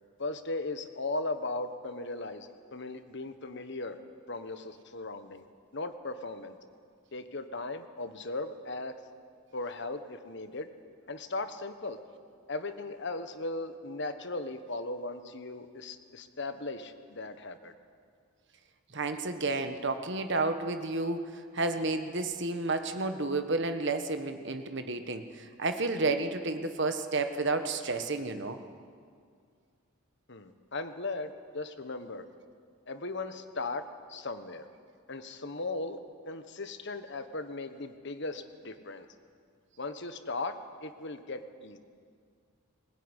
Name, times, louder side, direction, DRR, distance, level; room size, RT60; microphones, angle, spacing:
voice 1, 0.2-4.0 4.3-5.4 5.7-6.6 7.1-8.9 9.5-10.7 11.1-12.0 12.5-17.7 30.3-32.2 32.9-34.7 35.1-36.0 36.2-39.1 39.8-41.8, left 2 dB, 55° left, 9 dB, 1.3 m, -37 dB
voice 2, 18.9-28.6, right 3 dB, 55° right, 8 dB, 1.5 m, -31 dB
21.0 x 20.0 x 10.0 m, 2.2 s
head